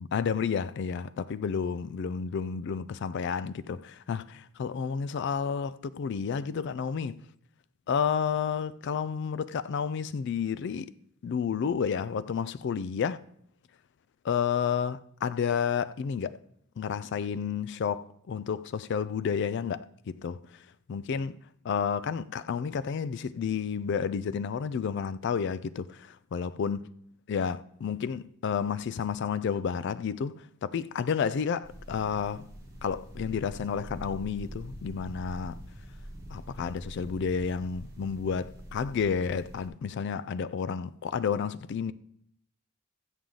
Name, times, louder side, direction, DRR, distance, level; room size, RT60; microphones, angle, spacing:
voice 1, 0.1-7.2 7.9-10.9 11.2-13.2 14.2-16.4 16.8-20.4 20.9-21.4 21.6-26.9 27.3-32.5 32.8-35.6 36.3-41.9, left 6 dB, 50° left, 0.3 m, -31 dB
sound 1, 31.6-39.7, equal, 15° right, 1.5 m, -45 dB
7.2 x 6.3 x 3.8 m
head